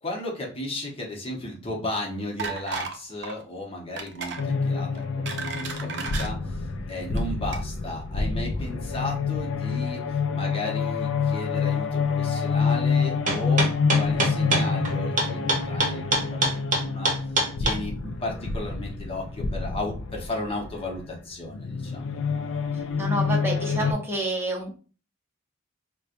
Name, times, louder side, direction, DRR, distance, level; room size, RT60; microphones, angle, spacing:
voice 1, 0.0-13.7 14.0-17.1 17.6-22.1, left 1 dB, 30° left, -1 dB, 1.0 m, -35 dB
sound 1, 2.4-3.0 3.2-3.4 4.0-4.4 4.9-6.3 7.0-7.2 7.5-7.6, right 5 dB, 60° right, 0.5 m, -33 dB
sound 2, 4.4-23.9, left 5 dB, 75° left, 0.4 m, -27 dB
sound 3, 13.3-17.8, right 2 dB, 40° right, 0.9 m, -23 dB
voice 2, 22.7-24.8, right 1 dB, 10° right, -2 dB, 0.8 m, -29 dB
4.3 x 2.2 x 2.5 m, 0.36 s
head